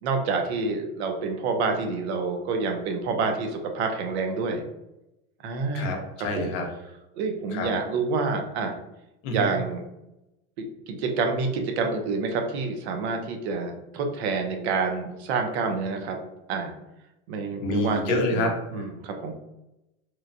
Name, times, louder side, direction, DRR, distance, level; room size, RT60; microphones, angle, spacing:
voice 1, 0.0-4.6 5.4-6.0 6.3-6.5 7.1-8.7 9.3-9.8 10.9-16.2 16.5-16.7 17.3-18.0 18.3-19.3, right 4 dB, 80° right, 4 dB, 0.6 m, -28 dB
voice 2, 5.7-6.7 7.5-7.7 9.2-9.5 17.6-18.5, left 1 dB, 45° left, 2 dB, 0.5 m, -27 dB
3.0 x 2.1 x 2.4 m, 0.92 s
supercardioid pair, 160°, 32 cm